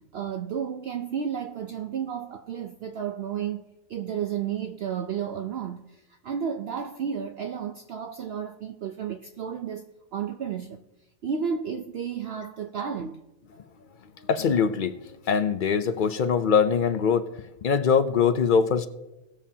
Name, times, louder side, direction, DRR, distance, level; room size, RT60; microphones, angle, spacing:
voice 1, 0.1-3.6 3.9-10.8 11.2-13.2, right 7 dB, 60° right, 0.8 m, -32 dB
voice 2, 14.3-15.0 15.3-17.3 17.6-18.9, left 6 dB, 55° left, 0.6 m, -22 dB
19.5 x 7.2 x 2.8 m
omnidirectional pair, 1.3 m